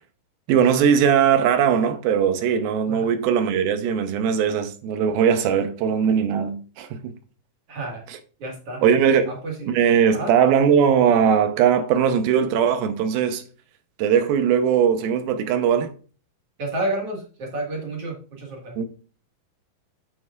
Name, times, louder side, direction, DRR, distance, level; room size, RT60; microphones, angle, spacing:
voice 1, 0.5-7.2 8.8-9.4 9.7-13.4 14.0-15.9 18.8-18.9, right 7 dB, 85° right, 2.7 m, -20 dB
voice 2, 7.7-8.0 8.4-8.8 9.3-9.7 10.1-10.3 16.6-18.8, right 2 dB, 50° right, 2.4 m, -30 dB
9.3 x 7.4 x 2.4 m
omnidirectional pair, 4.2 m